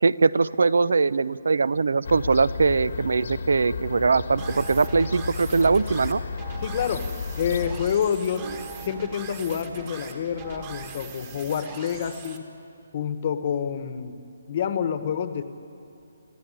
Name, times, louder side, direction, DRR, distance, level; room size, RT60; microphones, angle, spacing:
voice 1, 0.0-6.2, right 4 dB, 75° right, 19 dB, 0.6 m, -21 dB
Fowl / Gull seagull, 2.0-7.9, left 5 dB, 55° left, 1.2 m, -33 dB
sound 1, 4.4-12.4, right 5 dB, 20° right, 1.5 m, -41 dB
sound 2, 5.6-6.0 6.9-7.4 8.4-9.0 9.7-10.3 11.1-11.3, right 4 dB, 55° right, 3.4 m, -45 dB
voice 2, 6.6-7.1 7.4-8.5 8.8-12.5 12.9-14.2 14.5-15.4, left 8 dB, 30° left, 10 dB, 1.1 m, -28 dB
27.5 x 15.5 x 10.0 m, 2.6 s
hypercardioid pair, 175°, 0 cm